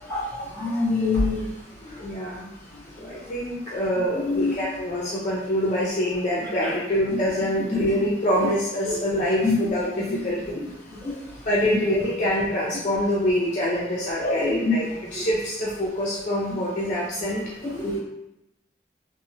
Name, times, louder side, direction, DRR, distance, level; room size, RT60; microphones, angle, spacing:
voice 1, 0.1-1.5 2.7-2.8 4.2-4.5 6.6-6.7 8.8-8.9 9.4-9.5 10.0-10.1 11.0-11.2 14.2-14.7 15.1-15.2 17.6-17.9, left 3 dB, 15° left, -8 dB, 1.1 m, -25 dB
voice 2, 1.8-2.5 3.0-10.6 11.5-17.4 17.8-18.0, equal, 40° left, -6 dB, 0.4 m, -25 dB
3.0 x 2.1 x 2.8 m, 0.88 s
head